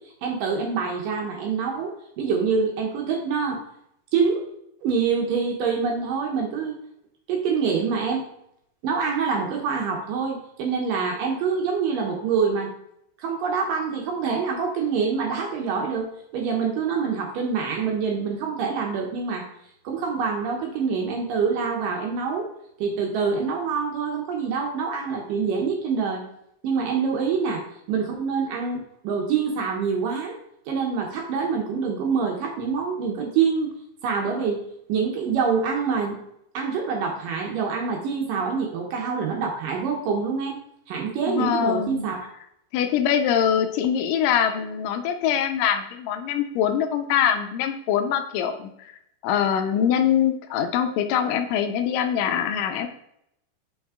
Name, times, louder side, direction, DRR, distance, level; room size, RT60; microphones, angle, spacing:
voice 1, 0.2-1.9 2.2-3.6 4.1-4.4 4.8-6.8 7.3-8.2 8.8-12.7 13.2-16.1 16.3-19.5 19.8-22.4 22.8-26.2 26.6-27.6 27.9-30.3 30.7-33.7 34.0-34.6 34.9-36.1 36.5-40.6 40.9-42.2, right 5 dB, 70° right, 0 dB, 2.2 m, -25 dB
voice 2, 41.3-42.1 42.7-48.9 49.2-52.9, left 9 dB, 90° left, 5 dB, 1.9 m, -23 dB
6.1 x 5.6 x 3.6 m, 0.74 s
omnidirectional pair, 4.5 m